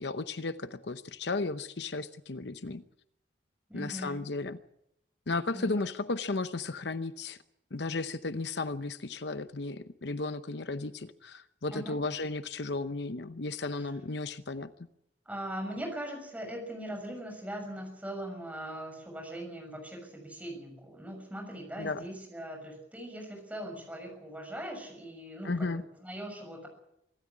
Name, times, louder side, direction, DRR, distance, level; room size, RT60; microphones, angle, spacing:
voice 1, 0.0-2.8 3.7-4.6 5.3-7.4 7.7-14.7 21.8-22.0 25.4-25.8, left 3 dB, 65° left, 12 dB, 0.8 m, -34 dB
voice 2, 3.7-4.2 5.5-5.9 11.7-12.0 13.7-13.9 15.2-26.7, right 1 dB, 10° right, 3 dB, 6.7 m, -40 dB
25.0 x 13.5 x 8.5 m, 0.80 s
head